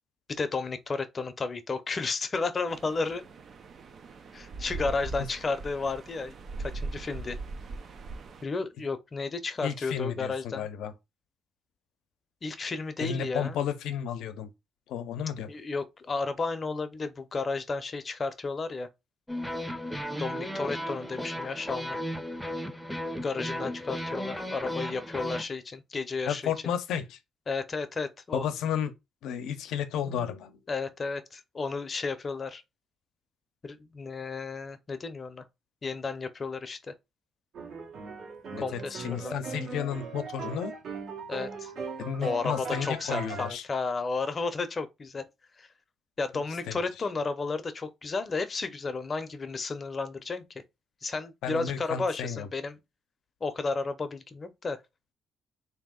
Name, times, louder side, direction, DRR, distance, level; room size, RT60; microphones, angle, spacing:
voice 1, 0.3-3.2 4.3-7.4 8.4-10.7 12.4-13.6 15.5-18.9 20.2-22.0 23.2-26.5 27.5-28.5 30.7-32.6 33.6-35.4 35.8-36.9 38.6-39.3 41.3-41.7 42.2-45.2 45.6-45.7 46.2-50.6 51.0-52.8 53.4-54.8, left 4 dB, 35° left, 0.7 m, -33 dB
sound 1, 2.7-8.4, right 3 dB, 55° right, 0.6 m, -40 dB
voice 2, 9.6-10.9 13.0-14.5 14.9-15.5 26.3-27.2 28.3-28.9 29.2-30.6 38.5-40.7 42.0-43.6 46.7-46.8 51.4-52.5, left 8 dB, 85° left, 0.6 m, -32 dB
sound 2, 19.3-25.4, equal, ahead, 0.7 m, -35 dB
sound 3, 37.5-43.5, right 5 dB, 75° right, 1.4 m, -39 dB
3.4 x 2.8 x 3.7 m
cardioid pair, 90°, 0 cm